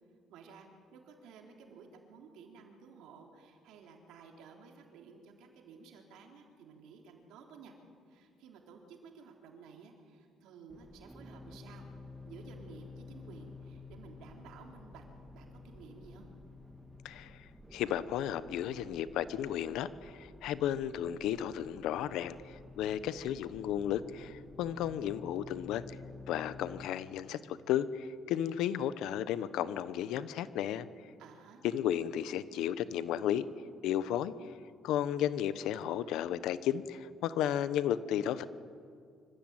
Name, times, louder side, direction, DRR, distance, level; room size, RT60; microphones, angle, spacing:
voice 1, 0.3-7.7 8.1-11.9 12.2-15.0 15.3-16.3 31.2-31.6, right 5 dB, 80° right, 2 dB, 3.8 m, -54 dB
sound 1, 10.7-26.9, left 3 dB, 5° right, 1.9 m, -51 dB
voice 2, 17.7-26.0 26.3-30.9 31.6-33.4 33.8-34.3 34.8-38.4, left 10 dB, 80° left, 15 dB, 1.0 m, -33 dB
25.5 x 15.0 x 9.0 m, 2.2 s
cardioid pair, 90°, 0 cm